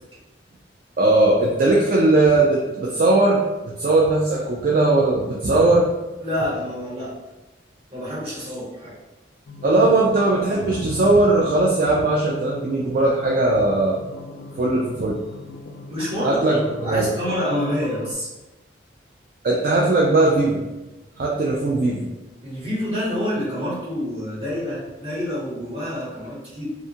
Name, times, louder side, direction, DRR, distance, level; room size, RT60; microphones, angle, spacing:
voice 1, 1.0-3.4 3.8-5.9 9.6-14.0 14.6-15.2 16.2-16.6 16.9-17.1 19.4-20.6 21.2-22.1, right 2 dB, 50° right, -3 dB, 0.3 m, -18 dB
voice 2, 6.2-7.1 7.9-9.0 15.9-18.3 22.4-26.6, equal, 30° right, -8 dB, 1.0 m, -27 dB
sound 1, 9.5-18.1, left 2 dB, 75° left, 0.4 m, -39 dB
2.5 x 2.3 x 2.8 m, 1.1 s
head